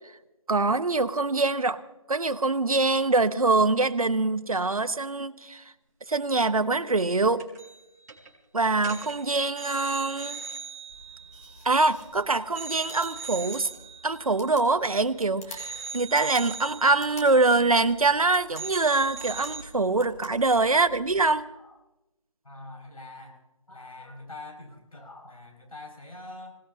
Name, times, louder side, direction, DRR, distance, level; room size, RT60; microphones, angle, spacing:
voice 1, 0.5-1.8 2.1-5.6 6.1-7.5 8.5-10.4 11.6-13.7 14.0-21.5, right 3 dB, 85° right, 10 dB, 1.1 m, -24 dB
sound 1, 7.4-7.8 8.1-8.3 8.7-12.1 12.6-15.2 15.6-18.2 18.5-19.6, right 5 dB, 30° right, 4.0 m, -40 dB
sound 2, 10.9-21.3, left 1 dB, 25° left, 2.0 m, -49 dB
voice 2, 22.4-23.4 23.7-26.6, left 2 dB, 80° left, 3 dB, 6.3 m, -44 dB
27.0 x 17.5 x 2.8 m, 0.94 s
figure-of-eight pair, 165°, 18 cm